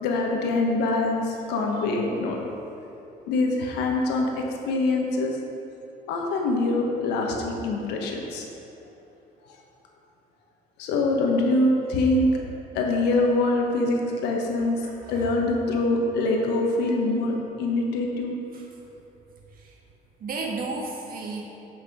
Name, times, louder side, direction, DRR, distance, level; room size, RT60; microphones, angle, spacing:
voice 1, 0.0-2.4 3.3-5.4 6.1-8.4 10.8-12.4 12.7-14.8 15.1-17.3 17.6-18.4, left 2 dB, 85° left, 1 dB, 1.3 m, -24 dB
voice 2, 14.8-15.3 18.5-18.6 19.6-19.7 20.2-21.4, right 3 dB, 60° right, 0 dB, 1.5 m, -33 dB
8.4 x 6.0 x 5.1 m, 3.0 s
cardioid pair, 110°, 17 cm